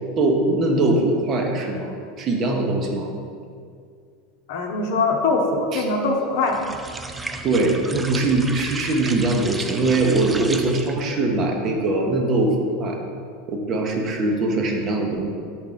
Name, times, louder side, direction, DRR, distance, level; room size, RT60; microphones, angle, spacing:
voice 1, 0.2-1.9 2.2-3.1 5.7-5.9 7.4-13.0 13.5-15.3, right 2 dB, 40° right, 2 dB, 0.8 m, -21 dB
voice 2, 4.5-6.6, left 3 dB, 60° left, 2 dB, 0.8 m, -22 dB
sound 1, 6.5-11.1, right 3 dB, 15° right, 0.4 m, -33 dB
5.8 x 4.3 x 3.8 m, 2.3 s
figure-of-eight pair, 80°, 0 cm